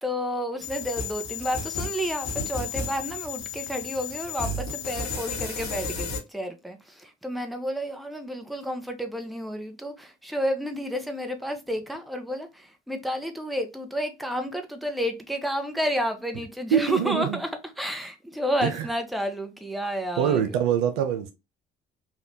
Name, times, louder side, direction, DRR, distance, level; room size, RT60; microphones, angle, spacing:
voice 1, 0.0-17.5 17.8-20.4, equal, ahead, 0.7 m, -31 dB
sound 1, 0.6-6.2, left 4 dB, 65° left, 1.1 m, -33 dB
voice 2, 16.7-17.4 18.6-18.9 20.2-21.3, right 9 dB, 75° right, 0.5 m, -24 dB
3.4 x 2.4 x 2.7 m
hypercardioid pair, 45°, 30 cm